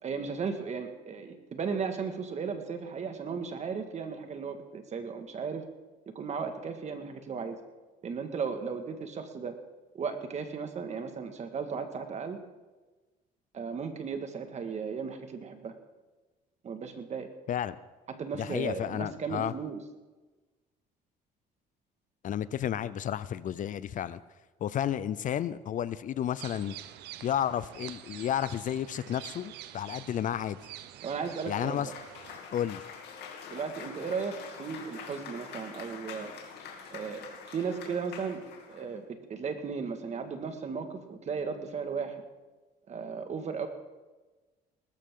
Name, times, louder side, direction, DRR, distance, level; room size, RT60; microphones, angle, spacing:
voice 1, 0.0-5.6 6.2-7.6 8.0-9.5 9.9-12.4 13.5-15.7 16.6-17.3 18.1-19.8 31.0-31.8 33.5-36.3 36.9-38.4 38.7-42.2 42.9-43.7, right 5 dB, 40° right, 7 dB, 1.9 m, -35 dB
voice 2, 18.3-19.5 22.2-24.2 24.6-26.7 27.2-30.6 31.5-31.9 32.5-32.8, left 10 dB, 50° left, 16 dB, 0.6 m, -32 dB
sound 1, 26.4-32.4, right 12 dB, 85° right, 0.8 m, -47 dB
Cheering / Applause, 31.2-38.9, left 6 dB, 80° left, 2.7 m, -45 dB
19.5 x 13.5 x 3.8 m, 1.2 s
cardioid pair, 110°, 17 cm